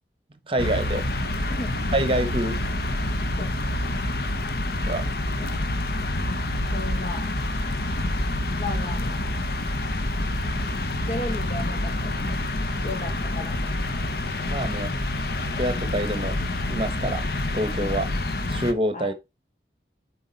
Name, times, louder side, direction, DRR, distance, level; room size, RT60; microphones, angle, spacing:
voice 1, 0.5-1.1 1.9-2.6 4.9-5.1 14.5-14.9 15.5-16.3 16.7-17.3 17.5-18.1 18.5-19.1, right 1 dB, 30° right, 1.2 m, -26 dB
sound 1, 0.6-18.7, left 1 dB, 60° left, 0.9 m, -27 dB
voice 2, 6.7-7.2 8.6-9.2 11.0-12.4 12.8-13.6 18.9-19.1, left 2 dB, 40° left, 1.3 m, -34 dB
7.7 x 4.7 x 4.1 m
head